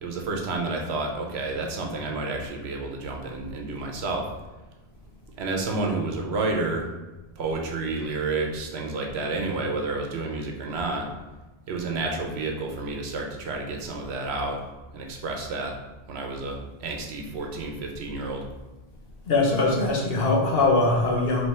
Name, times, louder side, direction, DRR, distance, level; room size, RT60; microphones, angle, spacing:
voice 1, 0.0-4.3 5.4-6.9 7.4-11.1 11.7-14.6 14.9-15.7 16.1-18.4, right 3 dB, 90° right, 2 dB, 1.0 m, -30 dB
voice 2, 19.3-21.5, left 2 dB, 65° left, -1 dB, 1.1 m, -22 dB
3.4 x 3.2 x 4.2 m, 1.1 s
omnidirectional pair, 1.1 m